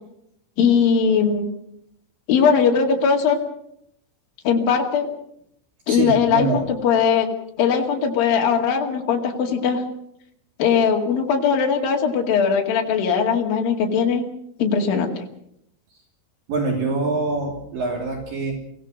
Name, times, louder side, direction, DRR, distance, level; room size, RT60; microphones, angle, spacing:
voice 1, 0.6-1.5 2.3-3.4 4.4-5.1 5.9-7.3 7.6-9.8 10.6-14.2 14.6-15.1, left 6 dB, 65° left, 0 dB, 3.9 m, -19 dB
voice 2, 5.9-6.7 16.5-18.5, right 3 dB, 60° right, 0 dB, 4.6 m, -24 dB
25.5 x 16.5 x 6.5 m, 0.74 s
omnidirectional pair, 4.6 m